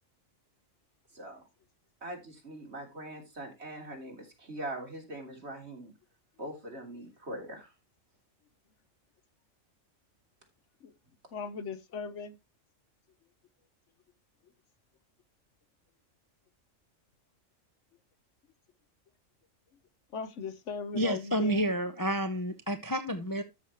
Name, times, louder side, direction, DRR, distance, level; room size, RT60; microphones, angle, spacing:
voice 1, 2.0-5.9 6.4-7.7, right 1 dB, 55° right, 3.6 m, -42 dB
voice 2, 11.3-12.4 20.1-21.6, left 5 dB, 65° left, 1.1 m, -38 dB
voice 3, 20.9-23.4, right 1 dB, 20° left, 0.7 m, -30 dB
13.0 x 6.2 x 3.0 m
omnidirectional pair, 1.4 m